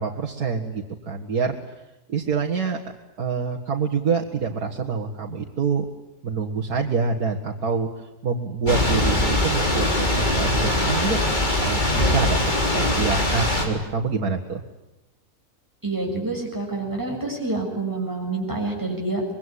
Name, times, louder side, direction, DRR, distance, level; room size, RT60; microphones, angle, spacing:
voice 1, 0.0-1.6 2.1-2.8 3.2-5.8 6.2-7.9 8.2-11.2 11.6-12.4 12.7-14.6, right 5 dB, 85° right, -1 dB, 2.3 m, -26 dB
Thunder / Rain, 8.7-13.7, left 1 dB, 30° left, 4.0 m, -22 dB
voice 2, 15.8-19.2, right 2 dB, 10° right, 0 dB, 7.2 m, -27 dB
25.5 x 22.5 x 9.8 m, 0.95 s
omnidirectional pair, 1.6 m